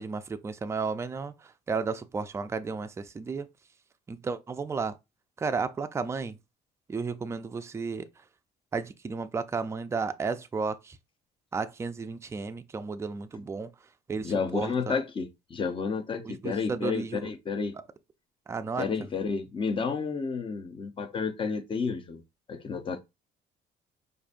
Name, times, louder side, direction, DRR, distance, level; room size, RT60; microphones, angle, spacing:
voice 1, 0.0-3.5 4.1-5.0 5.4-6.4 6.9-8.1 8.7-11.0 11.5-13.7 14.1-15.0 16.2-17.3 18.5-18.9, right 4 dB, 15° right, 0.4 m, -33 dB
voice 2, 14.2-17.8 18.8-22.2 22.5-23.0, left 5 dB, 30° left, 0.7 m, -31 dB
4.9 x 2.6 x 2.5 m
cardioid pair, 110°, 17 cm